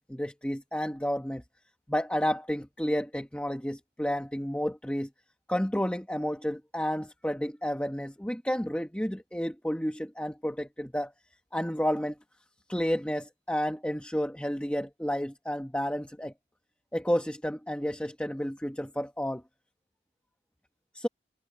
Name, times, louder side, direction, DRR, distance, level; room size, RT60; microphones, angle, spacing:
voice 1, 0.0-1.4 1.9-5.1 5.5-11.1 11.5-12.1 12.7-16.3 16.9-19.4 20.9-21.1, equal, 5° left, 1.3 m, -31 dB
head